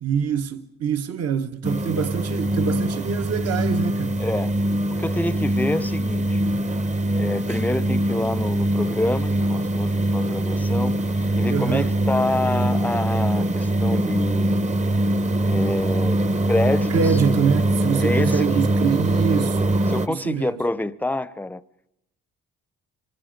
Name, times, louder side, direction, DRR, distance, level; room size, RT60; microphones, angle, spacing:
voice 1, 0.0-4.2 11.5-11.9 16.9-19.8 20.1-20.6, right 7 dB, 55° right, 1.1 m, -25 dB
sound 1, 1.6-20.1, right 1 dB, 25° right, 0.9 m, -23 dB
voice 2, 4.2-4.5 5.0-6.4 7.2-14.5 15.4-16.2 16.5-17.1 18.0-18.6 19.9-21.6, left 1 dB, 5° left, 0.7 m, -27 dB
26.0 x 25.0 x 5.2 m
cardioid pair, 90°, 30 cm